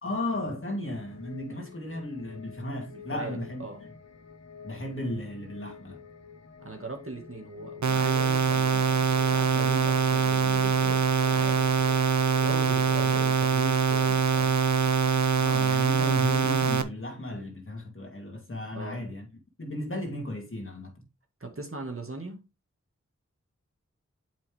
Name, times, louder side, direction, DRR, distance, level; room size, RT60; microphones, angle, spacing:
voice 1, 0.0-3.6 4.6-6.0 13.1-13.2 15.4-19.3 19.6-21.1, left 1 dB, 45° left, 2.6 m, -35 dB
sound 1, 0.8-13.3, left 6 dB, 65° left, 1.3 m, -47 dB
voice 2, 2.9-3.8 6.6-9.0 12.4-14.6 18.7-19.0 21.4-22.4, right 2 dB, 50° right, 2.0 m, -40 dB
sound 2, 7.8-16.8, right 6 dB, 75° right, 0.7 m, -24 dB
7.4 x 5.5 x 3.5 m
wide cardioid pair, 40°, 29 cm